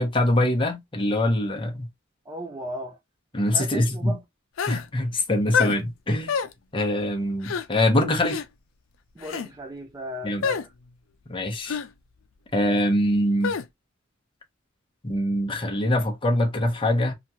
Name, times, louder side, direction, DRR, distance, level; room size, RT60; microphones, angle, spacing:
voice 1, 0.0-1.9 3.3-4.2 4.7-6.3 6.7-8.4 10.2-10.4 11.3-11.8 12.5-13.5 15.0-17.1, left 1 dB, 25° left, 0.7 m, -23 dB
voice 2, 2.3-3.0 3.5-4.2 9.2-10.7, equal, 15° right, 0.4 m, -36 dB
sound 1, 4.6-4.9 5.5-5.8 6.3-6.5 7.4-7.7 8.2-8.5 9.2-9.5 10.4-10.7 11.7-11.9 13.4-13.7, left 6 dB, 85° left, 0.4 m, -26 dB
2.9 x 2.3 x 2.7 m
head